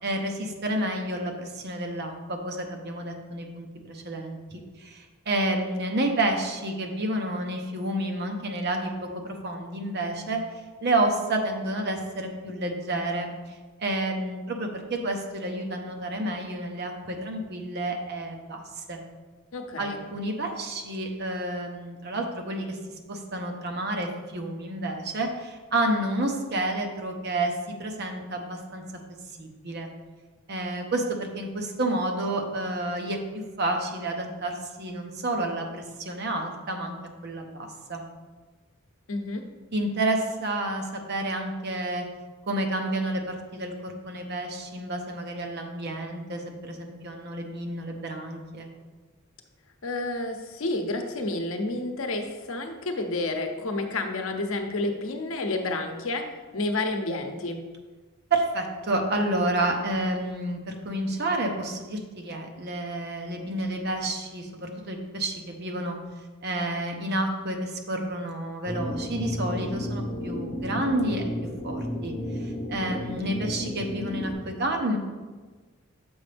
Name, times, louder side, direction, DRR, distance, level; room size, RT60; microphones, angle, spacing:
voice 1, 0.0-4.4 4.8-10.4 10.8-13.5 13.8-19.0 19.8-22.8 23.1-28.8 29.4-29.9 30.5-37.0 37.2-38.0 39.7-42.1 42.5-48.7 58.3-66.0 66.4-71.3 71.6-75.0, right 1 dB, 50° right, 3 dB, 0.8 m, -30 dB
voice 2, 19.5-20.0 39.1-39.4 49.8-56.2 56.5-57.6, left 2 dB, 75° left, 5 dB, 0.7 m, -30 dB
sound 1, 68.7-74.3, left 1 dB, 35° left, 0.8 m, -32 dB
7.1 x 5.1 x 3.4 m, 1.3 s
head